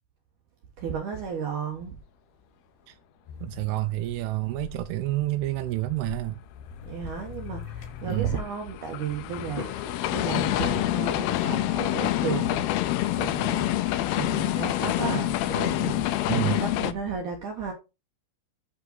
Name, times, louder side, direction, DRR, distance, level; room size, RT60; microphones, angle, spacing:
voice 1, 0.8-2.0 6.9-17.7, right 6 dB, 70° right, 1.9 m, -34 dB
sound 1, 3.3-8.4, left 7 dB, 70° left, 2.5 m, -42 dB
voice 2, 3.4-6.4 8.1-8.4 16.3-16.6, right 18 dB, 85° right, 2.2 m, -28 dB
sound 2, 7.6-16.9, left 14 dB, 90° left, 2.2 m, -27 dB
sound 3, 9.2-16.2, left 3 dB, 30° left, 1.5 m, -46 dB
8.2 x 5.6 x 3.9 m
omnidirectional pair, 5.1 m